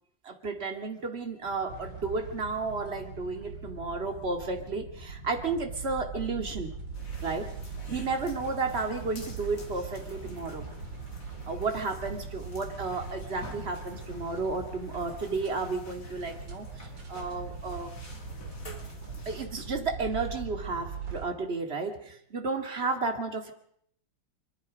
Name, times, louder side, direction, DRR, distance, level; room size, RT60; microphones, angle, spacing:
voice 1, 0.2-6.7 7.2-7.5 7.9-10.6 11.4-17.9 19.3-23.5, right 3 dB, 35° right, 5 dB, 2.4 m, -32 dB
sound 1, 1.4-19.4, left 3 dB, 70° left, 2.7 m, -50 dB
sound 2, 1.7-21.3, right 5 dB, 80° right, 3.7 m, -41 dB
sound 3, 6.9-19.5, left 1 dB, 45° left, 3.1 m, -50 dB
24.0 x 24.0 x 5.2 m, 0.68 s
omnidirectional pair, 2.0 m